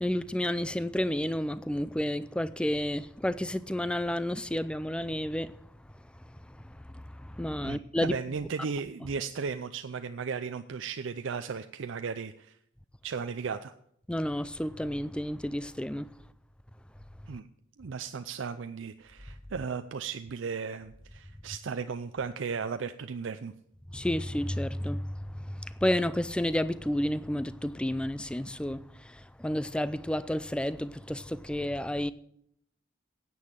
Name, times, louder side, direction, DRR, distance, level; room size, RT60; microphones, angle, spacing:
voice 1, 0.0-5.5 6.9-8.2 14.1-16.1 23.9-25.1 25.5-32.1, left 1 dB, 5° left, 0.3 m, -31 dB
voice 2, 7.6-12.5 13.0-13.7 17.3-17.5 17.8-23.5, right 5 dB, 70° right, 0.5 m, -35 dB
9.8 x 8.5 x 7.3 m
head